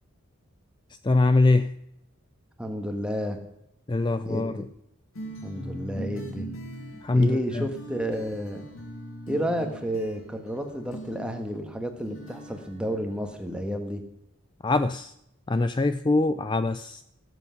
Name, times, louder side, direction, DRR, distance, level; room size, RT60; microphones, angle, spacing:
voice 1, 1.0-1.7 3.9-4.7 7.0-7.7 14.6-15.1 15.5-17.0, left 2 dB, 20° left, 11 dB, 0.4 m, -23 dB
voice 2, 2.6-3.4 4.2-4.5 5.4-6.6 7.1-8.6 9.3-14.0, equal, 5° right, 5 dB, 1.5 m, -31 dB
sound 1, 5.1-13.6, equal, 85° left, 2.9 m, -41 dB
18.0 x 8.1 x 5.8 m, 0.78 s
head